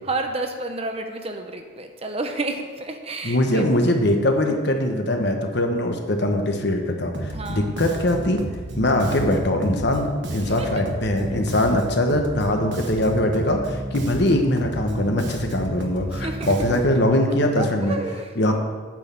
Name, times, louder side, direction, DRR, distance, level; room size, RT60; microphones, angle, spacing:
voice 1, 0.0-3.7 4.5-4.6 7.3-7.7 10.4-10.7 16.1-16.8 17.3-18.3, right 2 dB, 30° right, 5 dB, 0.8 m, -31 dB
voice 2, 3.2-8.5 8.8-18.0 18.4-18.5, left 1 dB, 55° left, 4 dB, 1.1 m, -22 dB
Bass guitar, 7.1-17.0, right 1 dB, 60° right, 1.2 m, -32 dB
8.9 x 6.4 x 7.0 m, 1.5 s
head